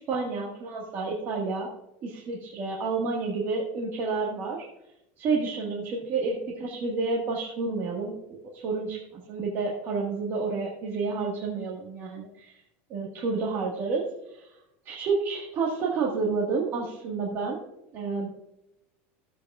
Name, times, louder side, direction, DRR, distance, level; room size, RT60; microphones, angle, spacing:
voice 1, 0.0-1.7 2.0-4.6 5.2-12.6 12.9-14.5 14.8-17.6 17.9-18.3, right 4 dB, 35° right, -3 dB, 1.7 m, -30 dB
15.0 x 8.1 x 2.4 m, 0.86 s
supercardioid pair, 150°, 7 cm